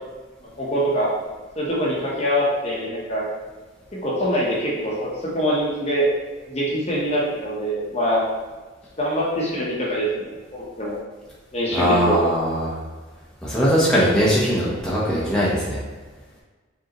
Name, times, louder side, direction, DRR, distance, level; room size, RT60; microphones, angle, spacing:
voice 1, 0.6-1.1 1.6-3.2 3.9-5.1 5.3-6.1 6.5-8.2 9.0-10.9 11.5-12.2, equal, 30° left, -5 dB, 0.9 m, -24 dB
voice 2, 11.7-12.7 13.4-15.8, equal, 5° left, -8 dB, 0.9 m, -20 dB
5.0 x 3.5 x 3.0 m, 1.3 s
head